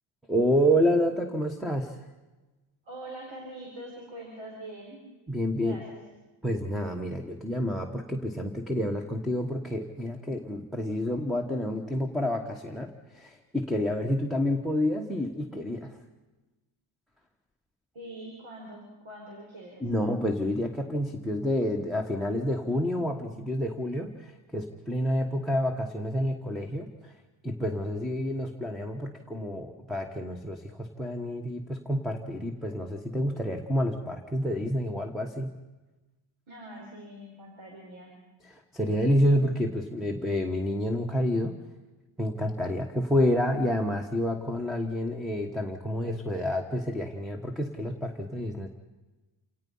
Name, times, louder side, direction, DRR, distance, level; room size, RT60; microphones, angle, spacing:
voice 1, 0.3-2.0 5.3-5.8 6.4-16.0 19.8-27.1 27.4-35.5 38.4-41.6 42.2-48.7, equal, ahead, 4 dB, 1.3 m, -29 dB
voice 2, 2.8-5.0 5.6-6.0 17.9-20.0 36.5-38.1, right 1 dB, 75° right, -1 dB, 5.4 m, -43 dB
28.0 x 18.0 x 5.6 m, 1.1 s
wide cardioid pair, 150°, 49 cm